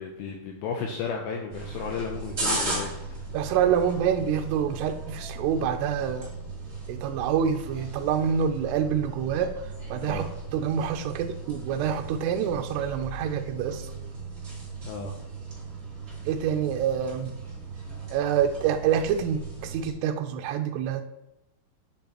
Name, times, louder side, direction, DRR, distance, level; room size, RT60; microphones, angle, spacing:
voice 1, 0.0-2.9 10.0-10.3 14.8-15.1, left 5 dB, 80° left, 1 dB, 2.2 m, -33 dB
sound 1, 1.5-19.9, right 3 dB, 35° right, 1.0 m, -37 dB
voice 2, 3.3-6.3 6.9-9.5 9.9-13.8 16.3-17.3 18.1-21.0, right 8 dB, 80° right, 5 dB, 2.6 m, -26 dB
9.3 x 7.3 x 3.0 m, 0.88 s
omnidirectional pair, 5.1 m